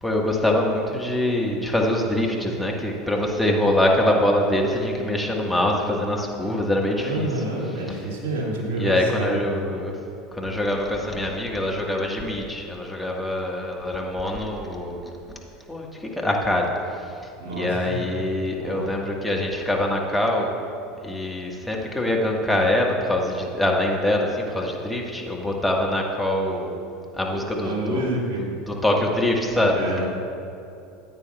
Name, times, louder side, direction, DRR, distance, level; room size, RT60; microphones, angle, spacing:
voice 1, 0.0-7.3 8.8-10.0 10.3-15.4 15.7-15.9 16.2-16.7 17.5-20.5 21.0-26.8 27.2-28.0 28.7-30.1, left 1 dB, ahead, -2 dB, 1.5 m, -24 dB
voice 2, 7.0-9.4 17.4-18.2 18.5-18.9 27.2-28.4 29.7-30.1, right 1 dB, 60° right, -3 dB, 2.3 m, -29 dB
13.5 x 9.1 x 2.3 m, 2.7 s
figure-of-eight pair, 75°, 0 cm